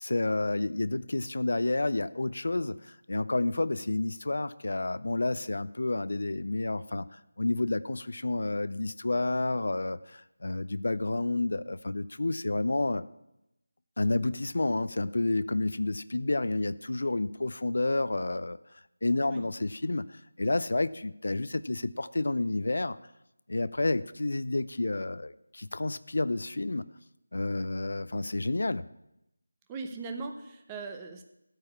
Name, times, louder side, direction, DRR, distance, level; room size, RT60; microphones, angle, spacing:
voice 1, 0.0-13.1 14.0-18.6 19.0-23.0 23.5-26.9 27.3-28.9, left 2 dB, 60° left, 15 dB, 0.5 m, -30 dB
voice 2, 29.7-31.2, right 4 dB, 15° right, 5 dB, 0.8 m, -39 dB
13.5 x 4.7 x 8.5 m, 0.87 s
figure-of-eight pair, 165°, 0 cm